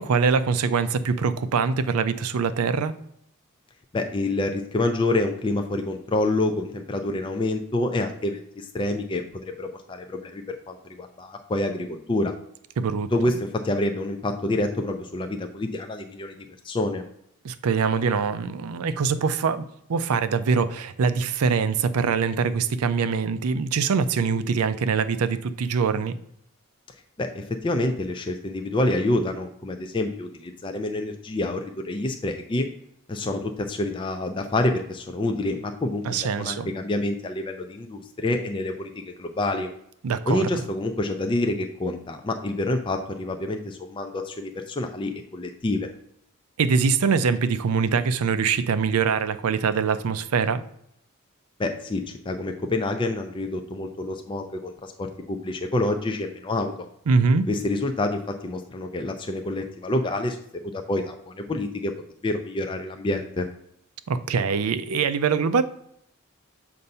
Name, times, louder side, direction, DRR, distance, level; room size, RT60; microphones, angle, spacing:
voice 1, 0.0-2.9 12.8-13.1 17.4-19.6 19.9-26.1 36.0-36.7 40.0-40.5 46.6-50.6 57.1-57.5 64.1-65.6, right 5 dB, 85° right, 13 dB, 0.4 m, -23 dB
voice 2, 3.9-9.2 9.6-12.3 13.1-16.4 16.6-17.0 27.2-32.7 33.1-39.7 40.3-45.9 51.6-56.7 57.5-61.9 62.2-63.5, left 2 dB, 20° left, 5 dB, 0.4 m, -27 dB
6.8 x 2.6 x 5.3 m, 0.72 s
head